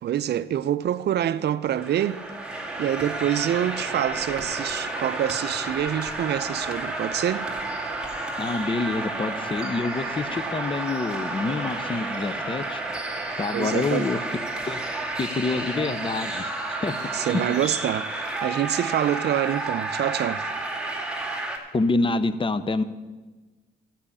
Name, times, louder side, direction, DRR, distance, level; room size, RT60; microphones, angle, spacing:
voice 1, 0.0-2.2 2.8-7.5 13.5-14.1 17.1-20.5, right 11 dB, 60° right, 0.5 m, -26 dB
sound 1, 1.8-21.6, right 2 dB, 5° right, 2.1 m, -31 dB
voice 2, 8.4-12.8 13.4-14.2 14.7-14.8 15.2-16.9 17.3-17.6 21.7-22.8, left 3 dB, 25° left, 0.7 m, -27 dB
12.0 x 5.7 x 8.6 m
cardioid pair, 90°, 20 cm